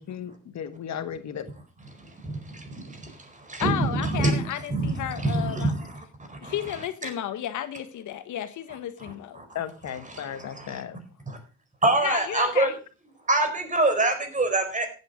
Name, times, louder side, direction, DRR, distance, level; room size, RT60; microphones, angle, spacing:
voice 1, 0.0-1.5 9.5-11.0, left 9 dB, 65° left, 10 dB, 1.5 m, -35 dB
voice 2, 2.2-3.1 3.4-4.4 4.7-6.0 6.3-6.5 9.3-9.4 10.6-10.8 11.3-11.4 11.8-12.7 13.3-14.9, right 2 dB, 25° right, 7 dB, 4.5 m, -25 dB
voice 3, 3.6-5.7 6.4-9.4 12.0-12.7, left 11 dB, 80° left, 11 dB, 1.5 m, -33 dB
15.0 x 8.8 x 5.2 m, 0.36 s
cardioid pair, 90°, 30 cm